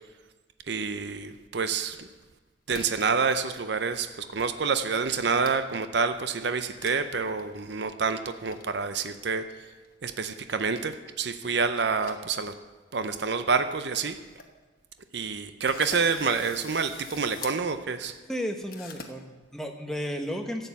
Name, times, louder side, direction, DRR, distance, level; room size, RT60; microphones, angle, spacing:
voice 1, 0.7-2.1 2.7-9.4 10.0-12.5 12.9-14.2 15.1-18.1, right 5 dB, 55° right, 10 dB, 0.6 m, -28 dB
sound 1, 1.9-2.4 2.7-3.2 3.5-4.0 4.4-4.5 4.8-5.8 6.1-6.3 6.8-7.0 7.3-7.4 8.0-8.6 9.8-10.9 11.5-12.6 12.9-13.0 13.5-13.6 13.9-14.0 14.2-14.5 15.0-15.1 15.7-17.6 18.7-19.1, left 5 dB, 45° left, 1.1 m, -45 dB
voice 2, 18.3-20.7, equal, ahead, 3 dB, 0.9 m, -33 dB
11.5 x 7.7 x 8.3 m, 1.3 s
head